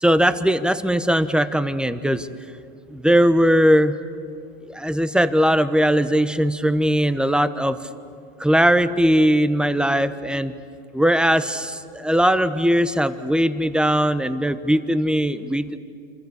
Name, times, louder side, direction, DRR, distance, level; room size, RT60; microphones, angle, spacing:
voice 1, 0.0-2.3 2.9-3.9 4.6-7.8 8.4-10.5 10.9-15.8, equal, 5° right, 12 dB, 1.1 m, -19 dB
27.5 x 25.0 x 8.1 m, 2.4 s
supercardioid pair, 105°, 30 cm